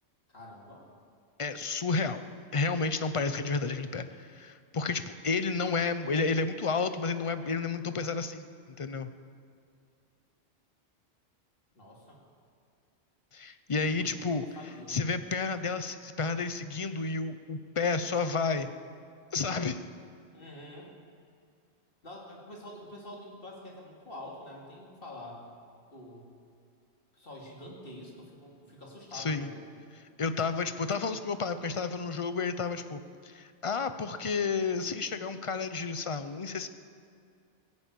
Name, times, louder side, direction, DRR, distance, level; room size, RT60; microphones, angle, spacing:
voice 1, 0.3-0.8 11.7-12.2 13.8-15.0 20.3-20.9 22.0-25.5 25.9-26.3 27.1-29.5, left 1 dB, 50° left, -2 dB, 3.0 m, -46 dB
voice 2, 1.4-2.2 2.5-8.5 8.8-9.1 13.3-14.5 14.9-18.7 19.3-19.8 29.1-29.5 30.2-36.7, left 4 dB, 35° left, 10 dB, 0.6 m, -31 dB
17.5 x 9.7 x 8.3 m, 2.4 s
omnidirectional pair, 1.2 m